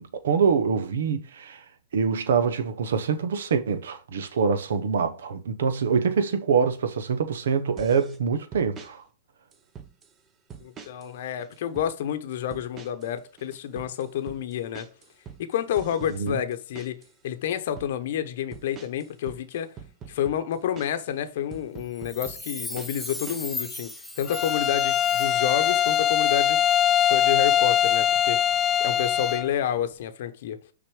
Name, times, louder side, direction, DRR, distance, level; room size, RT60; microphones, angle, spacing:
voice 1, 0.0-1.6 1.9-9.0 16.1-16.4, right 6 dB, 80° right, 1.0 m, -25 dB
sound 1, 7.8-8.2 8.5-8.9 9.5-10.1 10.5-11.1 11.4-11.9 12.5-13.1 13.4-17.1 17.5-17.9 18.5-21.1 21.5-23.7, right 7 dB, 25° right, 0.9 m, -44 dB
voice 2, 10.6-14.9 15.4-17.0 17.2-19.7 20.1-26.6 27.1-28.4 28.8-30.6, left 10 dB, 65° left, 0.9 m, -29 dB
Chime, 22.0-25.6 25.9-26.0, left 2 dB, ahead, 0.7 m, -38 dB
Bowed string instrument, 24.3-29.5, left 9 dB, 25° left, 0.3 m, -22 dB
6.2 x 3.9 x 4.9 m
hypercardioid pair, 135°, 0 cm